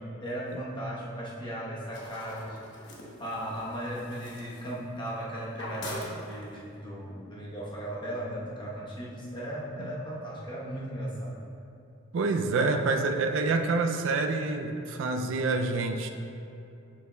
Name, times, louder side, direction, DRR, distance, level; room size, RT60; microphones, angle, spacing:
voice 1, 0.2-2.6 2.8-11.4, right 1 dB, 20° left, -6 dB, 1.0 m, -37 dB
sound 1, 1.9-5.2 5.5-6.7, left 1 dB, 60° left, 1.0 m, -43 dB
voice 2, 12.1-16.1, right 3 dB, 60° right, 5 dB, 0.3 m, -27 dB
6.6 x 6.5 x 2.2 m, 2.7 s
head